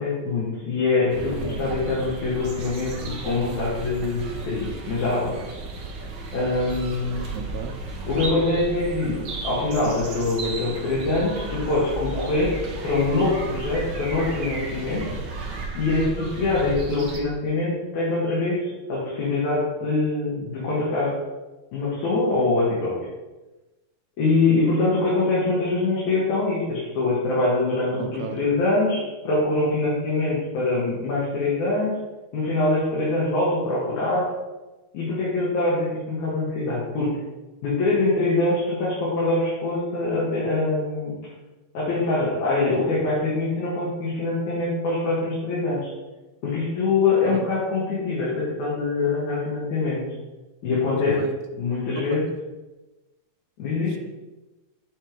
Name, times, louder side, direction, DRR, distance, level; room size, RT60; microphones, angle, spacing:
voice 1, 0.0-5.4 6.3-7.2 8.1-9.2 9.4-12.6 12.8-15.1 15.7-21.2 21.7-22.9 24.2-32.0 32.3-34.3 34.9-37.1 37.6-41.1 41.7-45.9 46.4-50.0 50.6-51.3 51.6-52.3 53.6-54.0, left 3 dB, 75° left, -7 dB, 3.0 m, -24 dB
sound 1, 1.1-17.2, right 3 dB, 60° right, 1.2 m, -34 dB
voice 2, 7.3-7.8 28.0-28.4 42.7-42.8 47.3-47.4 51.0-51.3 52.0-52.2 53.9-54.0, right 9 dB, 80° right, 6 dB, 2.0 m, -35 dB
9.9 x 3.6 x 4.6 m, 1.1 s
omnidirectional pair, 3.5 m